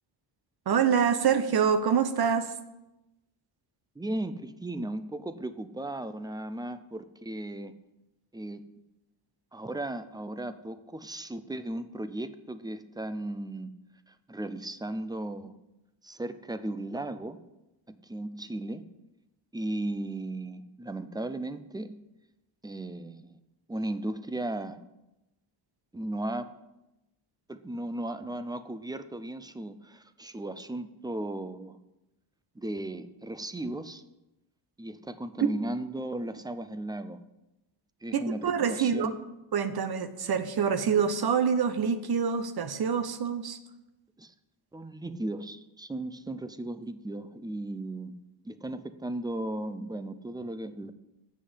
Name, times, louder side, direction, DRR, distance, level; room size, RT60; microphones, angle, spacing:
voice 1, 0.7-2.5 35.4-35.5 38.1-39.1 39.5-43.6, right 7 dB, 50° right, 10 dB, 0.9 m, -26 dB
voice 2, 4.0-7.7 8.3-8.6 9.5-13.7 14.1-15.5 16.0-17.4 17.9-18.8 19.5-21.9 22.6-23.4 23.7-24.8 25.9-26.5 27.5-31.8 32.6-34.0 34.8-37.3 38.0-39.1 44.2-44.3 44.7-48.2 48.4-50.9, right 1 dB, 10° right, 11 dB, 0.4 m, -36 dB
7.7 x 6.3 x 8.1 m, 0.95 s
wide cardioid pair, 140°, 50 cm